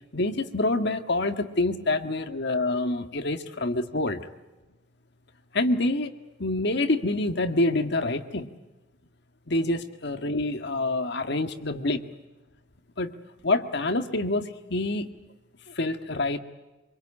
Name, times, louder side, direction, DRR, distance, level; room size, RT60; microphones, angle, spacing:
voice 1, 0.1-4.2 5.5-6.1 6.4-8.5 9.5-12.0 13.0-13.1 13.4-15.1 15.7-16.4, left 2 dB, 60° left, 8 dB, 1.8 m, -26 dB
25.5 x 23.0 x 8.7 m, 1.1 s
head